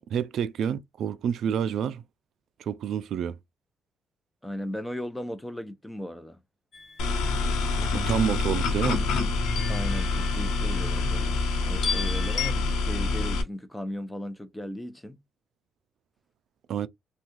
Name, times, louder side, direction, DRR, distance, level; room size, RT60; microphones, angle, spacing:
voice 1, 0.1-2.0 2.6-3.4 7.9-9.1 16.7-16.9, right 8 dB, 70° right, 0.4 m, -28 dB
voice 2, 4.4-6.4 9.7-11.4 11.6-15.2, left 1 dB, 10° left, 0.7 m, -36 dB
sound 1, 6.7-7.3 9.4-10.8 11.8-12.5, left 6 dB, 55° left, 0.7 m, -34 dB
sound 2, 7.0-13.4, left 3 dB, 85° left, 0.9 m, -26 dB
3.3 x 2.3 x 3.0 m
cardioid pair, 90°, 0 cm